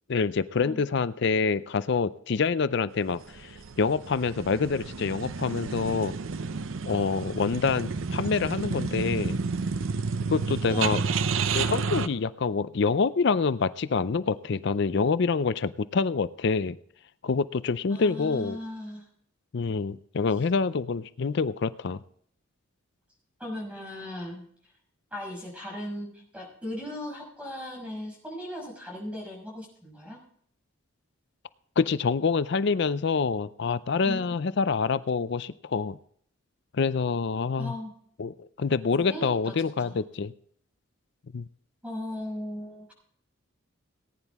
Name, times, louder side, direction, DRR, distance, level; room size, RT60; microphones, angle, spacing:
voice 1, 0.1-6.1 6.8-9.4 10.3-11.0 11.5-16.8 17.2-18.6 19.5-22.0 31.8-36.0 36.7-37.7 38.2-40.3 41.3-41.5, left 4 dB, 55° left, 15 dB, 0.5 m, -26 dB
sound 1, 3.2-12.1, right 4 dB, 75° right, 0.6 m, -30 dB
voice 2, 10.7-11.1 17.9-19.0 23.4-24.4 25.1-30.2 34.0-34.2 37.6-37.9 39.1-39.5 39.8-40.0 41.8-42.9, left 1 dB, 5° right, -2 dB, 6.0 m, -37 dB
18.5 x 10.0 x 3.6 m, 0.63 s
head